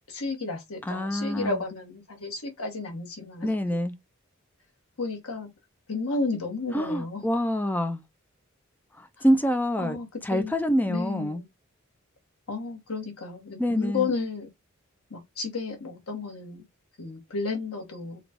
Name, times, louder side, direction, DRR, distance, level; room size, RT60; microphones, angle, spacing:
voice 1, 0.1-3.6 5.0-5.5 5.9-7.2 9.2-9.3 9.8-10.5 10.9-11.4 12.5-14.5 15.1-16.6 17.0-18.2, left 3 dB, 90° left, 1.2 m, -32 dB
voice 2, 0.9-1.6 3.4-3.9 6.7-8.0 9.0-10.0 10.2-11.4 13.6-14.1, equal, 10° left, 0.3 m, -26 dB
3.9 x 2.3 x 3.4 m
head